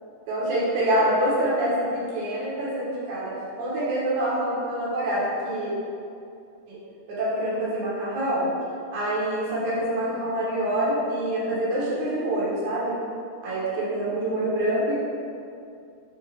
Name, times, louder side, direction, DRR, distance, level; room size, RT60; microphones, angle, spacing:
voice 1, 0.3-5.7 6.7-6.8 7.1-8.5 8.9-12.9 13.4-14.9, right 1 dB, 80° right, -8 dB, 3.0 m, -26 dB
6.6 x 3.0 x 4.9 m, 2.4 s
omnidirectional pair, 3.3 m